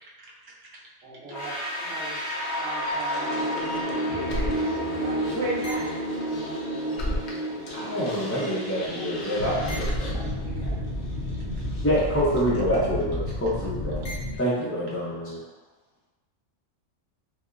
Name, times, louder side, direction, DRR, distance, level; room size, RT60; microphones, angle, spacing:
voice 1, 0.0-0.8 5.3-5.9 15.2-15.3, right 1 dB, 60° right, -4 dB, 0.9 m, -33 dB
voice 2, 1.0-3.9 4.5-5.3 8.9-9.7 10.1-10.8, right 2 dB, 85° right, -9 dB, 1.8 m, -41 dB
sound 1, 1.3-12.2, equal, 45° left, 0.8 m, -31 dB
sound 2, 2.1-7.4 7.7-14.4, left 1 dB, 65° left, 1.0 m, -33 dB
sound 3, 4.1-7.8, right 1 dB, 85° left, 1.8 m, -46 dB
voice 3, 7.7-10.1 11.8-14.0 14.4-15.4, equal, 15° left, -9 dB, 0.5 m, -26 dB
4.9 x 2.1 x 2.5 m, 1.2 s
omnidirectional pair, 1.3 m